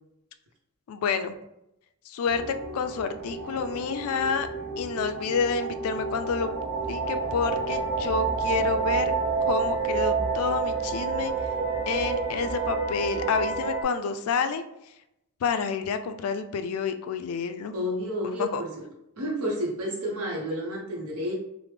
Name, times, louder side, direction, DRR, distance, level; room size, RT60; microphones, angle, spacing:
voice 1, 0.9-1.3 2.1-4.5 4.8-6.5 6.8-9.1 9.5-11.3 11.9-14.6 15.4-17.7 18.4-18.6, left 5 dB, 75° left, 9 dB, 0.3 m, -29 dB
sound 1, 2.3-13.8, right 4 dB, 50° right, 0.6 m, -29 dB
voice 2, 17.7-18.7 19.2-21.3, equal, 80° right, -2 dB, 0.7 m, -30 dB
3.3 x 2.0 x 3.2 m, 0.85 s
head